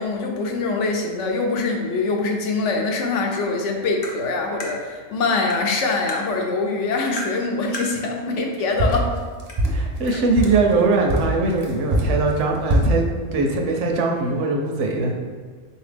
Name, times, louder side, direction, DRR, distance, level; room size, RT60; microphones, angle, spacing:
voice 1, 0.0-9.1 10.0-10.2, left 3 dB, 70° left, 1 dB, 0.9 m, -24 dB
Tap, 4.0-4.2 4.6-4.7 5.5-5.7 6.1-6.2 7.2-7.4 7.7-7.9 8.9-9.0 9.5-9.6, left 1 dB, 40° left, 0.6 m, -32 dB
sound 1, 8.8-10.7 11.1-13.0, right 1 dB, 45° right, 0.5 m, -21 dB
voice 2, 9.7-13.1 13.3-15.2, right 3 dB, 75° right, 2 dB, 0.9 m, -21 dB
4.1 x 2.8 x 3.3 m, 1.5 s
omnidirectional pair, 1.3 m